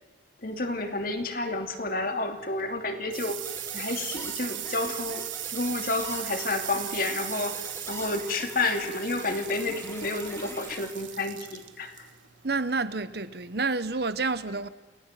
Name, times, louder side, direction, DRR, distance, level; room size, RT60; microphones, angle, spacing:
voice 1, 0.4-3.4 3.7-5.2 5.5-12.1, left 2 dB, 50° left, 2.8 m, -30 dB
sound 1, 2.4-13.7, right 13 dB, 85° right, 1.5 m, -38 dB
sound 2, 3.4-10.9, left 1 dB, 15° left, 3.7 m, -44 dB
voice 2, 12.4-14.7, right 3 dB, 55° right, 1.1 m, -29 dB
29.5 x 19.0 x 7.6 m
head